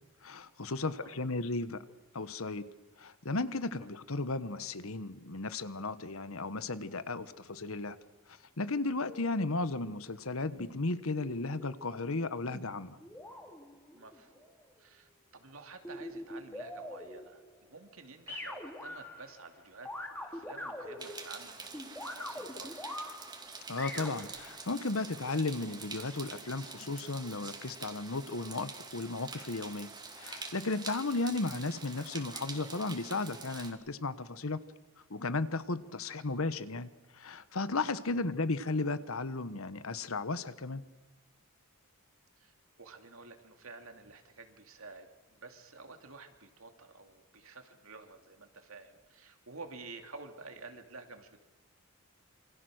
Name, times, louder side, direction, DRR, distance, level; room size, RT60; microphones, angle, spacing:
voice 1, 0.2-1.8 2.1-2.6 3.0-8.0 8.6-13.0 23.7-29.9 30.2-34.6 35.1-40.8, left 3 dB, 70° left, 13 dB, 1.2 m, -35 dB
voice 2, 0.8-1.3 3.8-3.9 13.9-22.9 31.0-31.4 38.1-38.4 42.4-51.4, right 3 dB, 65° right, 5 dB, 2.8 m, -51 dB
sound 1, 9.0-9.7 10.6-11.7 12.5-14.6 15.8-17.7 18.3-19.5 19.8-24.6, left 1 dB, 10° left, 3.2 m, -44 dB
sound 2, 21.0-33.7, right 4 dB, 20° right, 2.5 m, -46 dB
27.5 x 25.5 x 6.5 m, 1.1 s
head